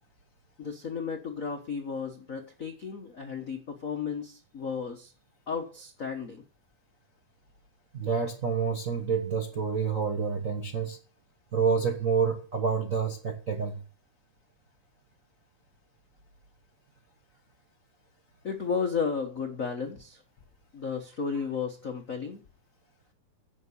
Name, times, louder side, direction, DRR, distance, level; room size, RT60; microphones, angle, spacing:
voice 1, 0.6-5.1 5.5-6.4 18.4-20.2 20.7-22.4, left 6 dB, 85° left, 4 dB, 0.7 m, -33 dB
voice 2, 7.9-11.0 11.5-13.8, right 6 dB, 65° right, 3 dB, 0.8 m, -28 dB
10.5 x 7.4 x 7.0 m, 0.38 s
omnidirectional pair, 3.6 m